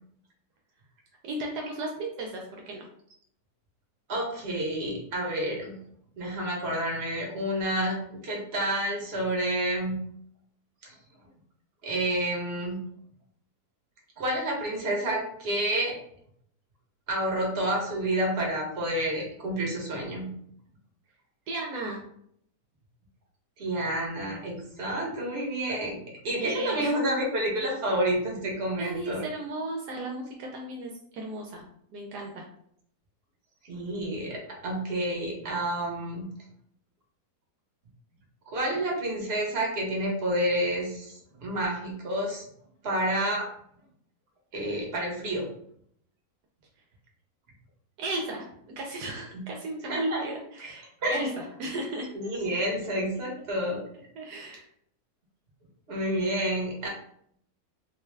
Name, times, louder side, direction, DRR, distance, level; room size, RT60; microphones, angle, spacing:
voice 1, 1.2-2.9 21.5-22.0 26.3-27.0 28.7-31.6 31.9-32.4 48.0-48.4 48.8-52.1 54.2-54.7, right 2 dB, 75° right, 1 dB, 1.1 m, -35 dB
voice 2, 4.1-5.8 6.2-10.0 10.8-10.9 11.8-12.8 14.2-16.0 17.1-20.3 23.6-26.0 26.2-29.2 33.7-36.2 38.5-42.4 42.8-43.5 44.5-45.5 49.3-49.4 49.8-50.2 51.0-51.2 52.1-53.8 55.9-56.9, right 1 dB, 40° right, -2 dB, 1.1 m, -29 dB
3.7 x 2.2 x 3.2 m, 0.68 s
omnidirectional pair, 1.8 m